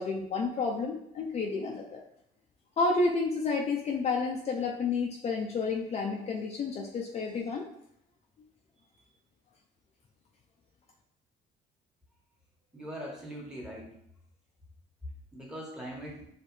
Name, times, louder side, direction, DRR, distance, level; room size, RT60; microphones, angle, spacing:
voice 1, 0.0-2.0 2.8-7.7, left 4 dB, 40° left, 0 dB, 0.6 m, -30 dB
voice 2, 12.7-14.0 15.3-16.3, equal, 5° right, -2 dB, 1.4 m, -41 dB
4.7 x 3.2 x 3.2 m, 0.74 s
cardioid pair, 110°, 17 cm